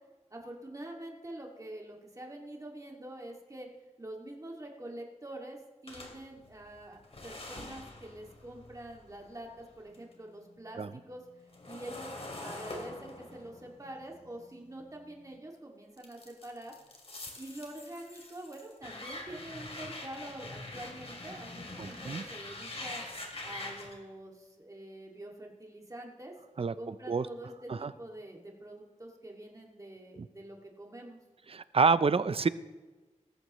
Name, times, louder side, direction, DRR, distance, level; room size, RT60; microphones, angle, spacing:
voice 1, 0.3-3.7 4.0-11.2 11.6-12.1 12.4-16.7 17.4-23.0 23.4-31.2, right 1 dB, 25° right, 0 dB, 2.2 m, -46 dB
sound 1, 5.9-10.1 10.5-15.4 16.0-24.0, left 2 dB, 50° left, 2.6 m, -45 dB
voice 2, 21.8-22.2 26.6-26.7 27.1-27.3 27.7-27.9 31.5-32.5, right 5 dB, 50° right, 15 dB, 0.6 m, -27 dB
19.0 x 14.0 x 3.1 m, 1.2 s
wide cardioid pair, 85°, 13 cm